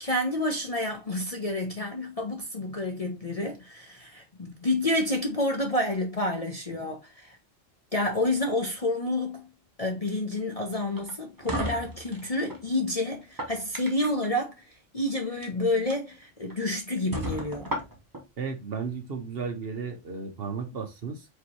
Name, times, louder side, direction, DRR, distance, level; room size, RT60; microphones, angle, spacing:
voice 1, 0.0-7.4 7.9-9.5 9.8-14.5 14.9-17.8, left 1 dB, 35° left, 0.7 m, -29 dB
sound 1, 10.9-12.6 13.2-14.3 15.3-15.5 15.9-16.0 16.5-16.6 17.1-18.2, right 1 dB, 20° right, 0.9 m, -34 dB
voice 2, 18.4-21.3, right 5 dB, 50° right, 1.0 m, -34 dB
4.9 x 3.0 x 3.1 m
omnidirectional pair, 1.4 m